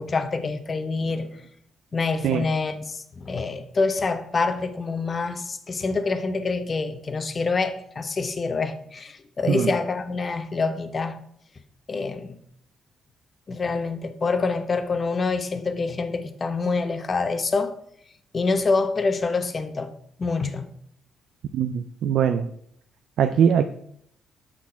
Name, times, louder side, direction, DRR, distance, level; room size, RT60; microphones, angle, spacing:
voice 1, 0.0-1.3 1.9-11.2 11.9-12.3 13.5-17.7 18.3-19.9 20.2-20.7, left 4 dB, 35° left, 0.9 m, -26 dB
voice 2, 21.5-22.5 23.2-23.6, right 8 dB, 75° right, 0.4 m, -21 dB
6.5 x 6.1 x 5.6 m
cardioid pair, 90°, 0 cm